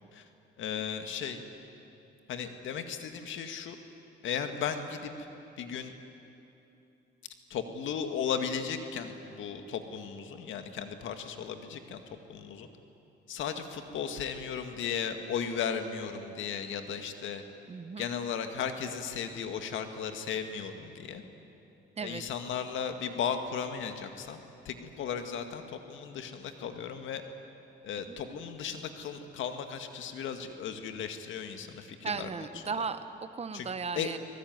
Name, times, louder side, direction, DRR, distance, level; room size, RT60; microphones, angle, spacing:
voice 1, 0.6-1.4 2.3-3.8 4.2-5.1 5.6-5.9 7.5-12.0 12.3-12.7 13.3-17.4 18.0-21.2 22.0-24.4 24.7-27.2 27.8-32.3 33.5-33.7 33.9-34.1, left 7 dB, 80° left, 7 dB, 2.0 m, -35 dB
voice 2, 17.7-18.1 22.0-22.2 28.1-28.4 32.0-34.2, right 5 dB, 30° right, 10 dB, 1.2 m, -36 dB
25.0 x 19.5 x 9.5 m, 2.8 s
cardioid pair, 90°, 20 cm